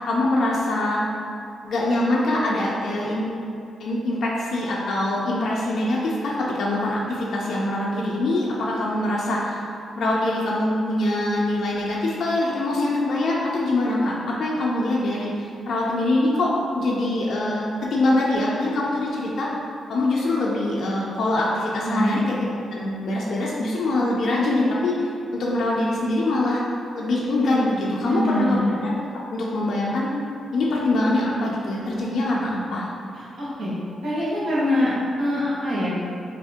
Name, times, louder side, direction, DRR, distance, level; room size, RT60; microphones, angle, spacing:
voice 1, 0.1-1.0 1.6-3.3 3.8-9.6 10.0-19.5 19.9-22.3 22.7-25.1 25.3-26.6 26.9-29.0 29.3-30.1 30.5-32.9, left 2 dB, 55° left, -5 dB, 0.4 m, -23 dB
voice 2, 21.8-22.2 28.0-28.7 33.1-33.7 34.0-34.9 35.2-35.9, left 1 dB, 60° right, -10 dB, 1.1 m, -24 dB
2.7 x 2.6 x 3.5 m, 2.5 s
wide cardioid pair, 160°, 0 cm